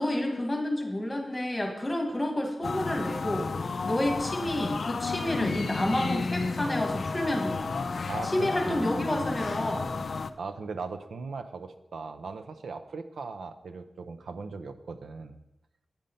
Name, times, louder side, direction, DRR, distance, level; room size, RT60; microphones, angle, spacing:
voice 1, 0.0-3.5 3.8-7.8 8.2-10.0, left 1 dB, 15° left, 2 dB, 1.5 m, -30 dB
sound 1, 2.6-10.3, left 4 dB, 55° left, 0.4 m, -32 dB
voice 2, 8.0-9.0 10.4-15.4, right 4 dB, 85° right, 9 dB, 0.6 m, -39 dB
8.9 x 5.6 x 5.2 m, 0.95 s
wide cardioid pair, 130°, 0 cm